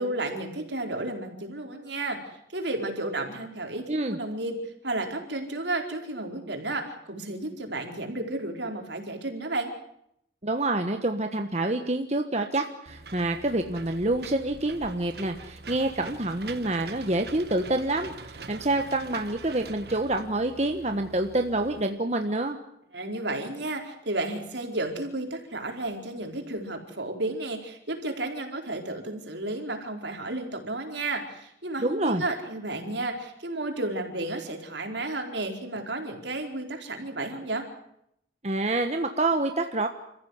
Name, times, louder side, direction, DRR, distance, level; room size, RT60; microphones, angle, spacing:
voice 1, 0.0-2.2 2.5-4.6 4.8-9.7 22.9-37.6, right 2 dB, 75° right, 3 dB, 4.4 m, -32 dB
voice 2, 10.4-22.6 31.8-32.2 38.4-39.9, right 2 dB, 35° right, 5 dB, 1.3 m, -27 dB
Engine / Mechanisms, 12.9-21.8, right 3 dB, 60° right, 1.4 m, -44 dB
29.0 x 15.0 x 9.6 m, 0.76 s
head